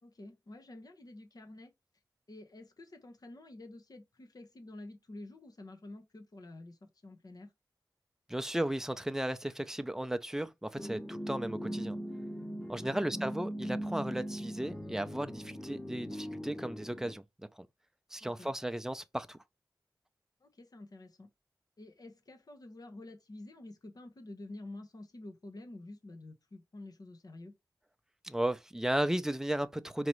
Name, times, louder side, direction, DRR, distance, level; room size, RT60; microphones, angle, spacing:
voice 1, 0.0-1.7 2.3-7.5 12.8-13.2 18.2-18.5 20.4-21.3 21.8-27.5, left 2 dB, 55° left, 1.0 m, -49 dB
voice 2, 8.3-12.0 12.7-17.2 17.6-17.7 18.1-19.4 28.2-30.1, right 1 dB, 5° right, 0.6 m, -35 dB
sound 1, 10.8-17.1, equal, 15° left, 1.2 m, -40 dB
5.0 x 2.9 x 3.1 m
cardioid pair, 50°, 8 cm